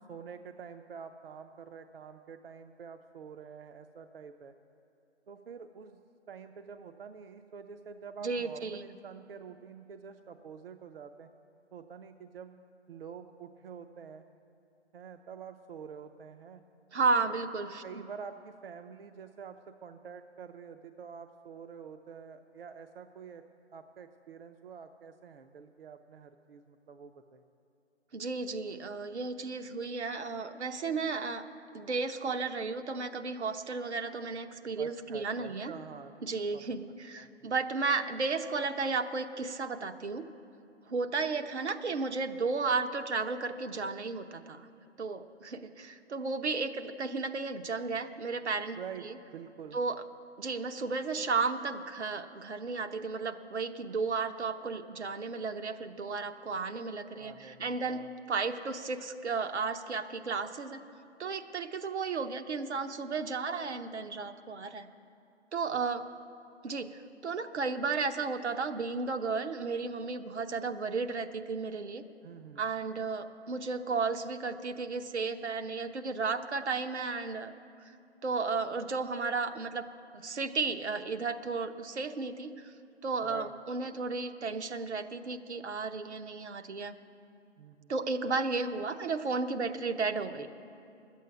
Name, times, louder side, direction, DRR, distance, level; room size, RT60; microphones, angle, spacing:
voice 1, 0.1-4.5 5.3-6.0 6.3-11.3 11.7-12.6 12.9-14.2 14.9-16.6 17.2-17.3 17.8-23.4 23.7-27.4 34.8-36.1 36.5-36.8 37.2-37.5 48.8-49.1 49.3-49.8 57.2-58.1 65.7-65.8 72.2-72.6 83.2-83.5 87.6-87.9, right 6 dB, 55° right, 7 dB, 0.6 m, -47 dB
voice 2, 8.2-8.9 16.9-17.8 28.1-31.5 31.7-35.7 36.2-40.3 40.9-44.7 45.0-49.1 49.7-50.0 50.4-58.0 58.3-60.8 61.2-64.9 65.5-66.0 66.6-72.0 72.6-77.5 77.8-77.9 78.2-79.9 80.1-82.7 83.0-86.9 87.9-90.5, right 4 dB, 75° right, 7 dB, 1.0 m, -33 dB
11.0 x 8.3 x 9.2 m, 2.6 s
figure-of-eight pair, 145°, 35 cm